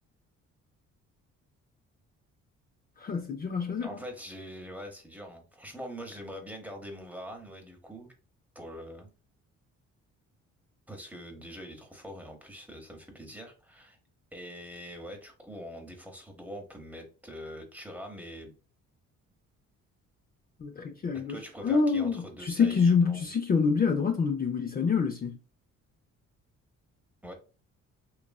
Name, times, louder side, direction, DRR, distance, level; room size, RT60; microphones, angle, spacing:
voice 1, 3.0-4.0 20.6-25.4, left 5 dB, 30° left, 0.5 m, -27 dB
voice 2, 3.8-8.1 8.5-9.1 10.9-14.0 14.3-18.5 21.1-23.2 27.2-27.3, equal, 5° right, 0.9 m, -43 dB
3.0 x 2.4 x 2.3 m
cardioid pair, 90°, 30 cm